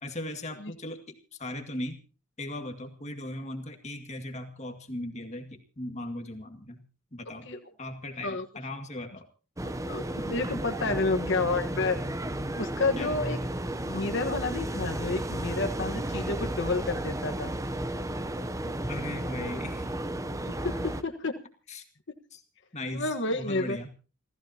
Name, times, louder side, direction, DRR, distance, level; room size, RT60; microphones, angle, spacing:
voice 1, 0.0-2.0 2.4-6.8 7.1-7.5 7.8-9.2 13.0-13.2 18.9-19.9 21.7-21.8 22.3-22.4 22.7-23.9, left 1 dB, 30° left, 5 dB, 2.0 m, -38 dB
sound 1, 9.6-21.0, right 1 dB, 15° right, 0.7 m, -33 dB
voice 2, 9.9-12.0 12.5-13.4 13.8-17.5 20.6-21.3 22.9-23.8, left 3 dB, 55° left, 4 dB, 1.4 m, -30 dB
29.0 x 14.5 x 2.9 m, 0.37 s
head